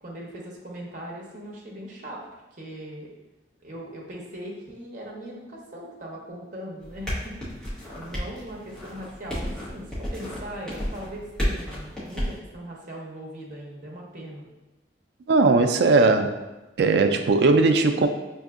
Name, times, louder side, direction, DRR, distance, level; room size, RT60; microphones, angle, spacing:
voice 1, 0.0-2.2 2.5-3.1 3.6-7.5 7.9-14.4, right 1 dB, 45° right, -3 dB, 0.8 m, -39 dB
sound 1, 6.8-12.4, equal, 5° left, 0.9 m, -32 dB
voice 2, 15.3-16.3 16.8-18.1, right 3 dB, 70° right, 7 dB, 0.3 m, -18 dB
5.5 x 2.6 x 2.4 m, 1.1 s
head